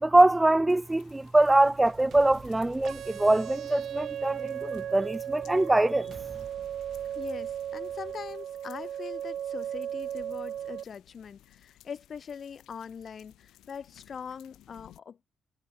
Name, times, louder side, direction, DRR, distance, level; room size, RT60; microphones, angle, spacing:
voice 1, 0.0-6.1, right 2 dB, 15° right, 0.6 m, -23 dB
sound 1, 0.7-15.0, left 14 dB, 85° left, 6.7 m, -59 dB
sound 2, 0.8-5.0 6.1-9.0, right 7 dB, 50° right, 4.8 m, -53 dB
sound 3, 2.8-10.8, right 10 dB, 65° right, 0.9 m, -36 dB
voice 2, 7.1-15.2, left 7 dB, 50° left, 6.0 m, -42 dB
cardioid pair, 90°, 0 cm